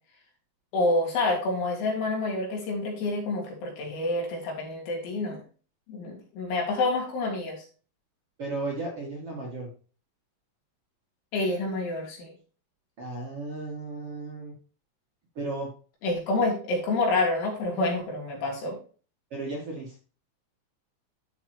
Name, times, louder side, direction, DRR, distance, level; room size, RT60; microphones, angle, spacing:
voice 1, 0.7-5.4 5.9-7.6 11.3-12.3 16.0-18.8, left 2 dB, 75° left, -1 dB, 5.5 m, -28 dB
voice 2, 8.4-9.7 13.0-14.5 15.4-15.7 19.3-20.0, right 2 dB, 45° right, -3 dB, 2.2 m, -34 dB
12.5 x 5.9 x 3.0 m, 0.37 s
omnidirectional pair, 5.5 m